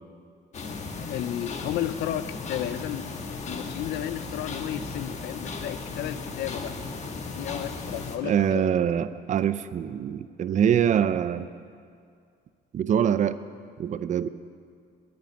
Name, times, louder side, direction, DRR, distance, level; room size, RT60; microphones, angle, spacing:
sound 1, 0.5-8.2, left 4 dB, 45° left, 1.3 m, -36 dB
voice 1, 1.1-3.1 3.5-6.7 7.3-8.7, left 12 dB, 75° left, 14 dB, 0.6 m, -33 dB
voice 2, 8.2-11.5 12.7-13.4 13.8-14.3, right 9 dB, 45° right, 13 dB, 0.5 m, -24 dB
10.5 x 9.1 x 10.0 m, 2.2 s
cardioid pair, 110°, 17 cm